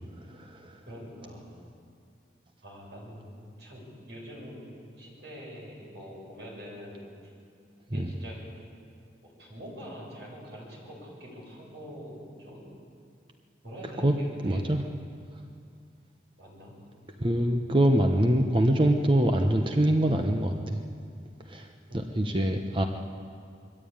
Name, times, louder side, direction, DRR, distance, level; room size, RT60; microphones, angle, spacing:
voice 1, 0.9-1.6 2.6-3.3 3.6-4.7 5.0-7.3 7.9-8.4 9.2-12.7 13.6-14.6 16.4-16.7 21.9-22.3, equal, 70° right, -4 dB, 7.7 m, -44 dB
voice 2, 14.4-14.8 17.2-20.8 21.5-21.7 21.9-22.8, right 1 dB, 30° right, 4 dB, 0.9 m, -24 dB
22.0 x 14.5 x 8.8 m, 2.3 s
head